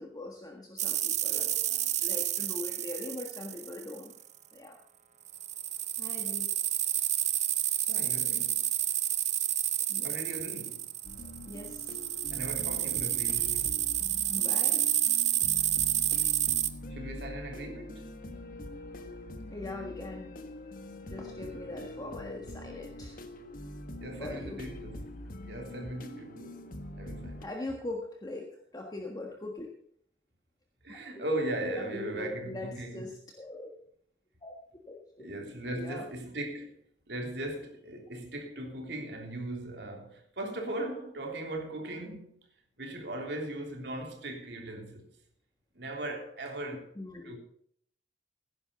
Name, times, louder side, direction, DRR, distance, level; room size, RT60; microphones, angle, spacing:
voice 1, 0.0-1.5 2.0-4.1 4.5-4.8 6.0-6.5 6.8-6.9 8.0-8.1 9.9-10.1 11.4-12.1 14.3-14.9 15.8-15.9 18.9-19.0 19.5-20.3 21.0-23.2 24.2-24.6 25.2-25.3 27.4-29.7 30.9-31.0 31.8-33.7 34.4-35.2 35.8-36.1 46.9-47.4, left 2 dB, 20° left, 1.6 m, -41 dB
sound 1, 0.8-4.1 5.3-16.7, right 12 dB, 40° right, 0.8 m, -30 dB
voice 2, 1.3-2.0 7.9-8.6 10.0-10.9 12.3-13.9 16.9-18.1 23.9-25.1 25.4-27.5 30.8-33.1 35.2-42.4 42.8-45.1 45.7-46.9 47.2-47.4, right 1 dB, 70° right, 3.3 m, -38 dB
sound 2, 11.0-27.4, left 1 dB, 50° left, 1.3 m, -44 dB
16.5 x 10.5 x 4.0 m
head